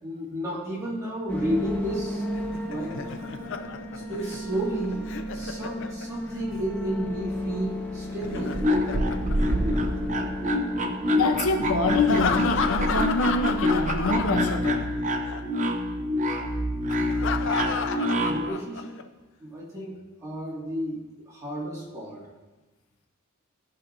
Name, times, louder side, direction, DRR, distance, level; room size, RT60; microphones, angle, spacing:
voice 1, 0.0-2.3 2.6-3.2 3.9-8.6 9.3-9.4 18.1-19.0 19.4-22.3, right 1 dB, 15° right, -7 dB, 2.1 m, -33 dB
sound 1, 1.3-12.8, left 1 dB, 5° left, 0.8 m, -34 dB
Laughter, 2.4-6.4 8.1-10.2 11.9-15.0 15.3-15.4 16.9-19.0, left 6 dB, 60° left, 0.5 m, -32 dB
sound 2, 8.2-18.5, left 1 dB, 35° right, 0.6 m, -26 dB
voice 2, 11.1-14.9, left 2 dB, 80° left, 5 dB, 0.8 m, -25 dB
13.5 x 5.8 x 2.6 m, 1.2 s
head